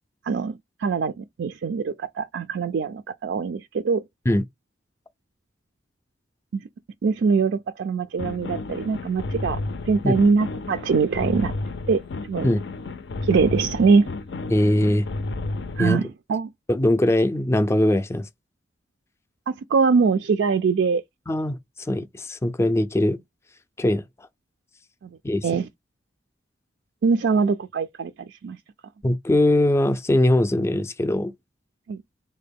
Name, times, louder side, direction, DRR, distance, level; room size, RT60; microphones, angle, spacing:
voice 1, 0.3-4.0 6.5-6.6 7.0-9.6 9.9-11.5 11.9-12.0 12.3-12.5 13.2-14.1 15.8-16.5 19.5-21.0 25.4-25.7 27.0-28.1 28.4-28.6 31.9-32.0, right 5 dB, 80° right, 0.4 m, -22 dB
sound 1, 8.2-16.0, left 2 dB, 70° left, 0.5 m, -32 dB
voice 2, 14.5-15.1 15.8-16.0 16.7-18.3 21.3-21.6 21.9-23.2 23.8-24.0 25.2-25.6 29.0-31.3, left 1 dB, 15° left, 0.4 m, -21 dB
3.7 x 2.1 x 3.5 m
head